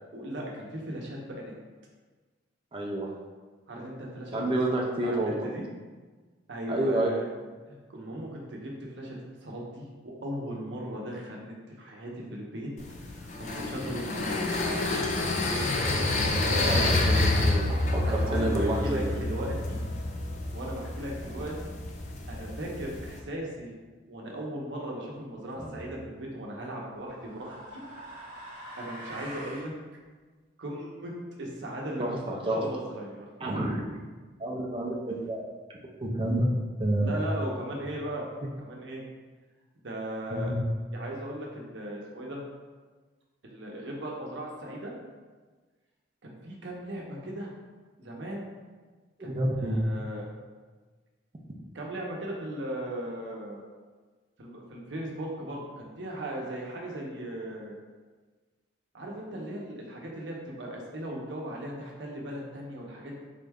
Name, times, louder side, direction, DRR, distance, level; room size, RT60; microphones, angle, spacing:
voice 1, 0.1-1.5 3.7-5.6 6.5-7.3 7.7-9.2 9.4-12.7 13.0-14.8 16.2-16.9 18.0-19.8 20.5-21.7 22.3-23.7 24.1-27.8 28.8-29.7 30.6-31.1 31.4-32.2 32.4-33.3 37.0-38.2 38.6-39.0 39.8-40.5 40.9-42.4 43.4-44.9 46.2-47.5 48.0-48.5 49.2-50.3 51.7-53.6 54.4-57.8 58.9-63.2, right 1 dB, 70° right, -2 dB, 0.7 m, -37 dB
voice 2, 2.7-3.1 4.3-5.5 6.7-7.2 16.6-19.0 32.0-32.6 33.4-33.9 34.4-35.5 36.0-36.5 36.8-37.1 40.3-40.6 49.2-49.8, right 1 dB, 30° right, -1 dB, 0.5 m, -29 dB
sound 1, 12.8-23.2, left 2 dB, 40° left, 0.4 m, -28 dB
sound 2, 25.6-25.9 26.9-29.7, right 1 dB, 45° right, 0.9 m, -44 dB
3.7 x 2.2 x 3.5 m, 1.4 s
head